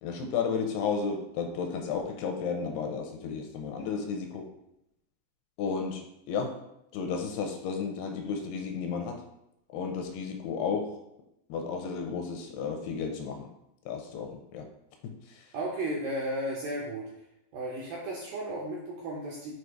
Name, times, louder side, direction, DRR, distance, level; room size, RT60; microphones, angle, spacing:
voice 1, 0.0-4.5 5.6-6.6 6.9-9.2 9.7-11.0 11.5-13.5 13.9-14.7 15.0-15.5, left 5 dB, 80° left, 3 dB, 2.5 m, -33 dB
voice 2, 15.5-17.1 17.5-19.5, right 1 dB, 80° right, -4 dB, 2.0 m, -34 dB
7.6 x 2.8 x 4.6 m, 0.83 s
omnidirectional pair, 5.0 m